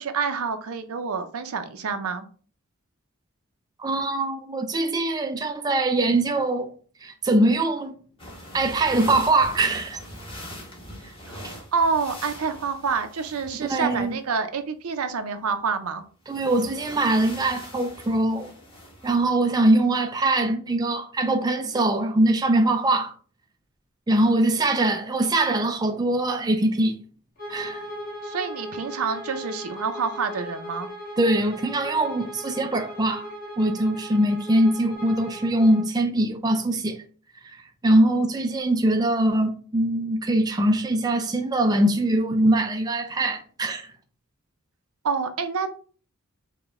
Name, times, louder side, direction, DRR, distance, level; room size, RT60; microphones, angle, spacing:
voice 1, 0.0-2.3 11.3-11.4 11.7-16.0 28.2-30.9 45.0-45.7, right 5 dB, 80° right, 0.5 m, -27 dB
voice 2, 3.8-6.7 7.0-7.9 8.5-10.0 11.0-11.1 11.4-11.5 13.7-14.2 16.3-18.5 19.0-23.1 24.1-27.0 27.5-27.9 31.2-33.3 33.6-37.0 37.8-43.9, right 1 dB, 20° right, 0.3 m, -22 dB
sound 1, 8.2-14.2 16.3-19.2, equal, 25° left, 1.1 m, -42 dB
Bowed string instrument, 27.4-35.9, equal, 40° left, 1.7 m, -38 dB
4.9 x 2.2 x 3.5 m
head